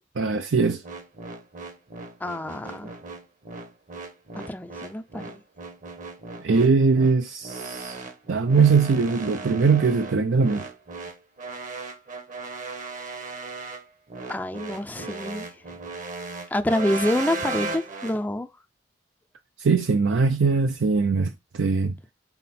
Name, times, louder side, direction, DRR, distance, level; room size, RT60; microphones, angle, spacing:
voice 1, 0.2-0.8 6.4-10.7 19.6-21.9, right 4 dB, 85° right, 0.5 m, -21 dB
sound 1, 0.8-18.2, right 3 dB, 45° right, 1.0 m, -36 dB
voice 2, 2.2-2.9 4.3-5.4 14.3-15.5 16.5-18.5, left 1 dB, 10° left, 0.4 m, -27 dB
5.7 x 4.2 x 4.2 m
head